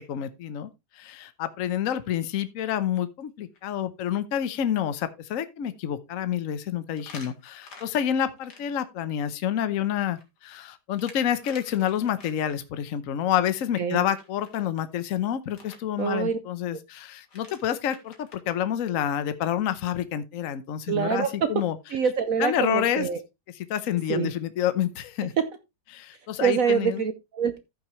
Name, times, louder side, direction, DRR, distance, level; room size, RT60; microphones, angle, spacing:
voice 1, 0.0-21.8 22.4-23.1 23.7-25.3 25.9-27.1, left 10 dB, 60° left, 1.1 m, -28 dB
sound 1, 2.0-2.2 2.6-2.7 3.2-3.3 3.5-3.6 6.9-8.6 9.8-12.6 14.1-14.6 15.5-15.8 17.0-17.1 17.2-18.6, left 4 dB, 75° left, 2.6 m, -49 dB
voice 2, 16.0-16.4 20.9-21.5 21.9-23.2 24.1-24.3 25.4-25.5 26.4-27.6, right 7 dB, 60° right, 1.1 m, -25 dB
14.0 x 6.0 x 3.1 m
omnidirectional pair, 1.8 m